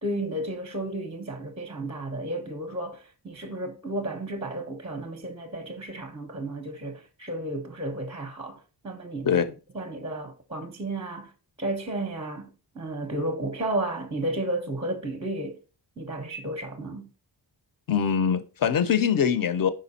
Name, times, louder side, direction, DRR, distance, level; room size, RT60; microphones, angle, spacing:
voice 1, 0.0-9.4 9.7-11.3 11.6-12.5 12.7-15.6 16.0-17.1, right 1 dB, 15° right, 0.6 m, -33 dB
voice 2, 17.9-19.7, left 7 dB, 50° left, 0.6 m, -23 dB
5.0 x 4.8 x 4.0 m
wide cardioid pair, 175°, 44 cm